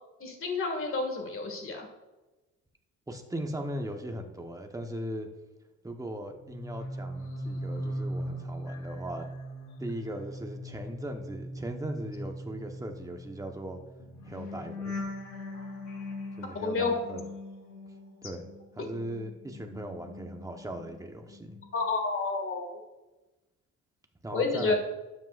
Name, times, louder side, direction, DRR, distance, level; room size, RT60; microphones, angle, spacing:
voice 1, 0.2-1.9 16.6-17.0 21.7-22.7 24.3-24.7, left 3 dB, 45° left, 3 dB, 2.1 m, -29 dB
voice 2, 3.1-5.3 5.8-9.3 9.8-13.8 14.2-14.9 16.4-17.3 18.2-18.5 18.7-21.6 24.2-24.7, right 1 dB, 10° right, 4 dB, 1.1 m, -38 dB
sound 1, 6.3-18.6 18.9-21.0 21.3-21.6, left 1 dB, 70° left, 2.1 m, -40 dB
12.5 x 7.6 x 2.5 m, 1.1 s
cardioid pair, 90°, 30 cm